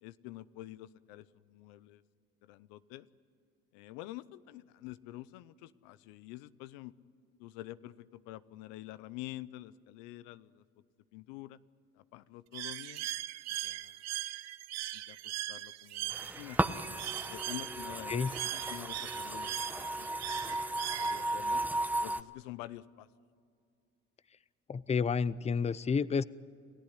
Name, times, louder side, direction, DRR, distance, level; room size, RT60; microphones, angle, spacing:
voice 1, 0.0-2.0 2.4-3.1 3.7-6.9 7.4-10.6 11.1-11.6 12.0-13.1 13.5-14.0 14.9-16.6 17.3-20.2 20.5-20.6 21.0-21.6 22.0-23.1, left 16 dB, 85° left, 16 dB, 0.7 m, -47 dB
Bird, 12.5-21.5, right 14 dB, 65° right, 0.8 m, -40 dB
sound 1, 16.1-22.2, right 1 dB, 5° right, 1.0 m, -35 dB
voice 2, 24.7-26.2, left 5 dB, 20° left, 19 dB, 0.6 m, -30 dB
28.5 x 15.5 x 10.0 m, 2.3 s
supercardioid pair, 80°, 29 cm